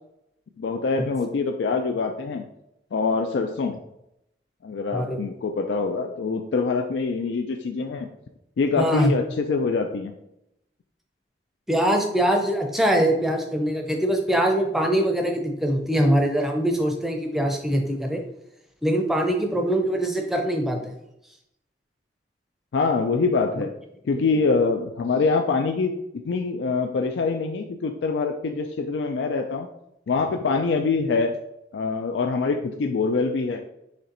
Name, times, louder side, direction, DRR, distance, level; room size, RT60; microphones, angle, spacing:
voice 1, 0.6-2.4 2.9-3.7 4.6-8.1 8.6-10.1 22.7-23.7 24.0-26.0 26.2-29.7 30.1-31.4 31.7-33.7, left 4 dB, 75° left, 5 dB, 0.4 m, -24 dB
voice 2, 8.8-9.1 11.7-18.2 18.8-20.9 24.3-24.4, right 1 dB, ahead, 2 dB, 0.5 m, -23 dB
4.3 x 3.1 x 3.9 m, 0.82 s
head